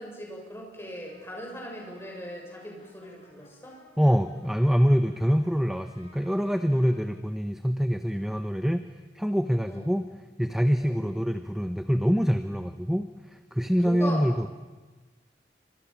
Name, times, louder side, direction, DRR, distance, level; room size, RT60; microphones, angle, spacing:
voice 1, 0.0-3.8 9.7-9.9 10.8-11.0 13.8-14.3, equal, 15° left, 0 dB, 7.2 m, -39 dB
Brass instrument, 1.0-7.2, equal, 35° left, 7.2 m, -57 dB
voice 2, 4.0-8.9 9.1-10.1 10.4-13.1 13.5-14.5, equal, ahead, 9 dB, 0.9 m, -25 dB
28.5 x 25.5 x 7.4 m, 1.2 s
head